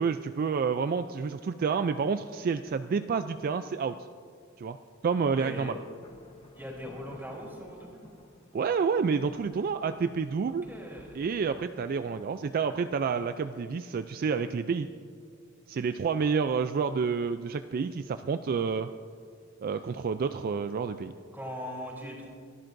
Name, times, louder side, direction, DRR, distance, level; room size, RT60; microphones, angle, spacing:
voice 1, 0.0-4.0 4.6-4.8 5.0-5.8 8.5-10.7 11.2-14.9 15.7-18.9 19.6-21.1, right 5 dB, 45° right, 10 dB, 0.3 m, -29 dB
sound 1, 4.9-5.0 5.7-12.2, left 1 dB, 30° left, 1.1 m, -54 dB
voice 2, 5.4-5.8 6.5-8.0 10.5-11.2 21.3-22.3, equal, 10° right, -2 dB, 3.3 m, -40 dB
24.5 x 12.0 x 2.6 m, 2.2 s
head